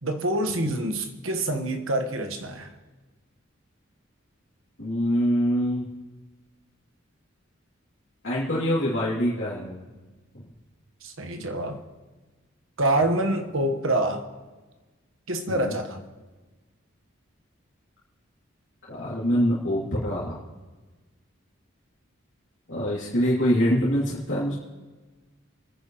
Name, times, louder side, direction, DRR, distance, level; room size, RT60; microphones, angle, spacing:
voice 1, 0.0-2.7 11.0-11.8 12.8-14.3 15.3-16.0, right 1 dB, 80° right, 6 dB, 1.4 m, -26 dB
voice 2, 4.8-5.9 8.2-9.8 15.5-15.7 18.9-20.4 22.7-24.5, equal, 65° left, -8 dB, 2.8 m, -24 dB
28.5 x 10.0 x 3.1 m, 1.3 s
head